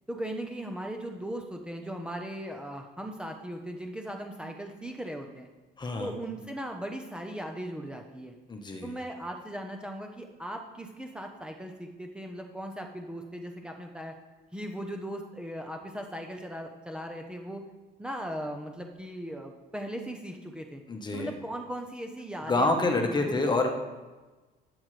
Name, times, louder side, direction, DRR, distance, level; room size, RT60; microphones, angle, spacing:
voice 1, 0.1-5.5 6.0-8.3 8.8-14.1 14.5-17.6 18.0-20.8 21.1-23.7, equal, 5° right, 2 dB, 1.0 m, -38 dB
voice 2, 5.8-6.1 8.5-8.9 20.9-21.3 22.4-23.7, left 2 dB, 25° left, 4 dB, 1.3 m, -27 dB
11.5 x 9.0 x 3.4 m, 1.2 s
cardioid pair, 110°, 17 cm